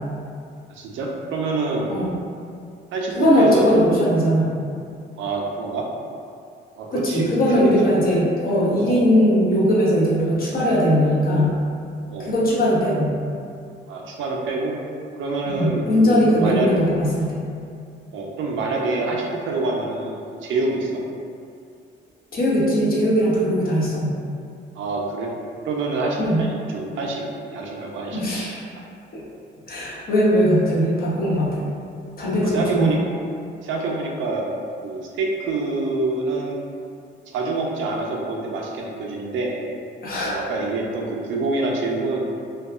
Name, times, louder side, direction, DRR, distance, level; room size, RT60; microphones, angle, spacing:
voice 1, 0.7-1.9 2.9-3.6 5.2-5.9 6.8-7.7 8.9-9.0 12.1-12.3 13.9-14.7 15.2-16.7 18.1-21.0 24.7-25.3 25.6-27.2 27.5-28.2 32.4-33.0 33.6-34.4 34.8-36.6 37.3-39.6 40.2-42.3, right 3 dB, 75° right, -1 dB, 0.5 m, -26 dB
voice 2, 3.2-4.5 6.9-11.6 12.2-13.1 15.5-17.4 22.3-24.1 26.2-26.4 28.1-28.6 29.1-29.2 29.7-31.7 32.2-33.0 40.0-40.4, equal, 50° left, -6 dB, 0.7 m, -19 dB
2.7 x 2.3 x 2.3 m, 2.4 s
cardioid pair, 90°, 20 cm